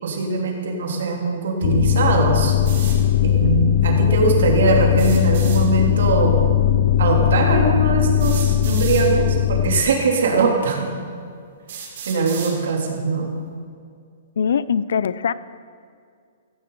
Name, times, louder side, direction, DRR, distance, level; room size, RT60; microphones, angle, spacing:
voice 1, 0.0-2.6 3.2-6.3 7.0-10.9 12.1-13.3, right 4 dB, 75° right, 0 dB, 3.0 m, -21 dB
sound 1, 1.6-9.8, left 10 dB, 50° left, 0.8 m, -18 dB
sound 2, 2.7-3.0 4.9-5.6 7.1-7.2 8.2-9.1 10.1-10.2 10.8-10.9 11.7-12.6, right 7 dB, 55° right, 3.4 m, -34 dB
voice 2, 14.4-15.3, left 7 dB, 75° left, 17 dB, 0.5 m, -21 dB
16.0 x 15.5 x 3.9 m, 2.2 s
hypercardioid pair, 165°, 0 cm